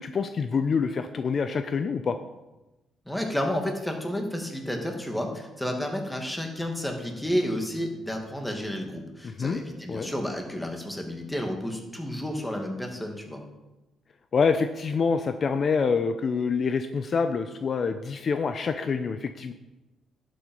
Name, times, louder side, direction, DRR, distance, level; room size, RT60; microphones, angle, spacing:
voice 1, 0.0-2.2 9.2-9.6 9.9-10.1 14.3-19.5, left 5 dB, 45° left, 9 dB, 0.7 m, -26 dB
voice 2, 3.1-13.4, equal, 5° left, 3 dB, 2.2 m, -31 dB
11.5 x 7.7 x 5.4 m, 1.0 s
cardioid pair, 90°, 0 cm